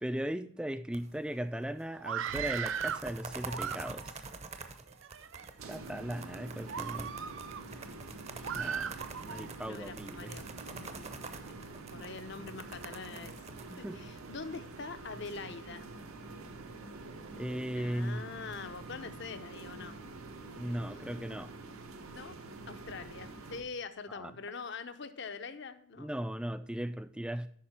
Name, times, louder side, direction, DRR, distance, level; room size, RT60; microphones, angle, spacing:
voice 1, 0.0-4.2 5.7-7.2 8.5-8.9 9.2-10.4 13.7-14.0 17.4-18.3 20.6-21.5 24.1-24.3 26.0-27.5, right 1 dB, 5° right, 0.3 m, -37 dB
sound 1, 0.9-1.6 2.1-14.6, right 4 dB, 30° right, 0.7 m, -46 dB
Screaming, 2.0-3.1 3.5-4.2 4.9-5.5 6.0-6.2 6.7-7.6 8.4-9.5, right 8 dB, 65° right, 0.5 m, -37 dB
sound 2, 5.6-23.6, right 3 dB, 85° right, 1.1 m, -47 dB
voice 2, 8.4-8.9 9.7-11.2 11.5-11.6 11.9-13.4 13.8-15.9 17.7-20.0 20.8-21.3 22.1-22.4 22.7-26.1, left 4 dB, 55° left, 0.6 m, -44 dB
8.6 x 5.8 x 4.3 m
head